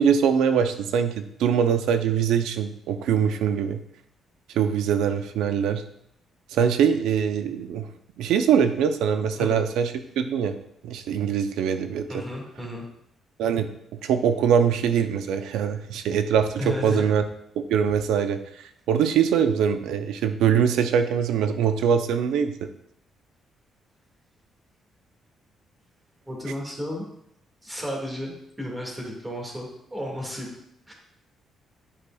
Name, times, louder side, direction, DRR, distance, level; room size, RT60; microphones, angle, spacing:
voice 1, 0.0-3.8 4.5-5.8 6.5-7.9 8.2-10.6 10.8-12.2 13.4-17.2 17.6-18.4 18.9-22.7, right 7 dB, 85° right, 9 dB, 0.5 m, -23 dB
voice 2, 12.1-12.9 16.6-17.0 26.3-27.1 27.6-30.5 30.9-31.0, left 1 dB, 10° right, 0 dB, 1.9 m, -33 dB
8.5 x 4.8 x 2.3 m, 0.75 s
cardioid pair, 90°, 0 cm